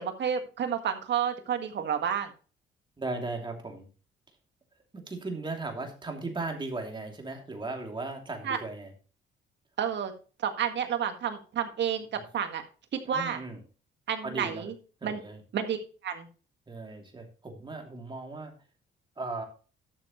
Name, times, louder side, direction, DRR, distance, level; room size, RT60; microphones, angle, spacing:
voice 1, 0.0-2.3 8.4-8.6 9.8-10.1 10.4-12.6 12.9-13.4 14.1-14.7 15.0-15.2 15.5-16.3, right 8 dB, 65° right, 6 dB, 1.7 m, -30 dB
voice 2, 3.0-3.9 5.1-8.9 13.1-13.6 14.2-14.7 15.0-15.4 16.7-18.5 19.2-19.4, right 3 dB, 25° right, 2 dB, 2.8 m, -37 dB
12.0 x 7.0 x 3.1 m, 0.36 s
cardioid pair, 90°, 20 cm